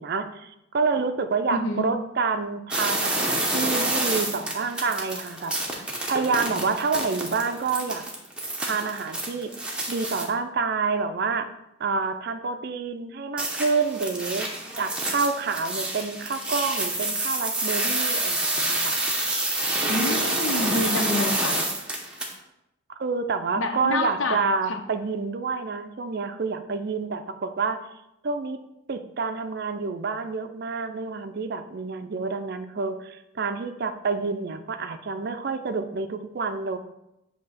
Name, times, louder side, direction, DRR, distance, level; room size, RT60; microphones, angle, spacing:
voice 1, 0.0-5.6 6.1-8.0 8.6-9.5 9.9-11.5 11.8-14.5 14.8-19.0 23.0-27.8 28.2-28.6 28.9-36.8, right 4 dB, 50° right, 8 dB, 0.4 m, -28 dB
voice 2, 1.5-1.9 19.9-21.6 23.6-24.4 24.7-24.8, left 2 dB, 70° left, 5 dB, 0.7 m, -27 dB
sound 1, 2.7-10.2 13.4-22.3, right 2 dB, 5° right, 0.8 m, -28 dB
7.6 x 2.8 x 5.7 m, 0.87 s
head